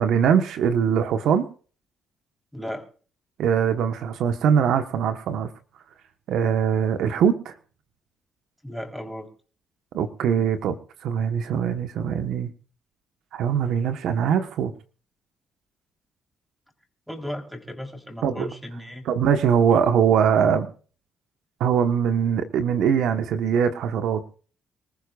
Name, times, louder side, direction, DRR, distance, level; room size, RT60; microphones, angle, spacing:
voice 1, 0.0-1.5 3.4-5.5 6.3-7.5 9.9-10.8 11.0-12.5 13.3-14.7 18.2-18.5 19.1-20.7 21.6-24.4, right 8 dB, 80° right, 8 dB, 1.2 m, -22 dB
voice 2, 2.5-2.8 8.6-9.3 17.1-19.1, equal, ahead, 2 dB, 3.8 m, -35 dB
25.5 x 14.5 x 2.5 m, 0.40 s
cardioid pair, 90°, 0 cm